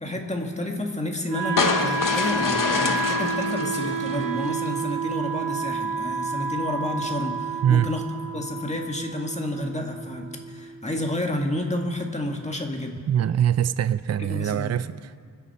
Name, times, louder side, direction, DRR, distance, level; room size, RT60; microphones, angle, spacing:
voice 1, 0.0-8.0 8.3-13.0 14.2-14.8, left 1 dB, 20° left, 2 dB, 1.9 m, -30 dB
Wind instrument woodwind instrument, 1.3-11.3, right 4 dB, 75° right, 2.1 m, -30 dB
sound 1, 1.6-4.8, left 5 dB, 60° left, 0.9 m, -27 dB
voice 2, 13.1-15.2, right 9 dB, 45° right, 14 dB, 0.4 m, -23 dB
25.5 x 10.5 x 4.3 m, 2.1 s
wide cardioid pair, 100°, 36 cm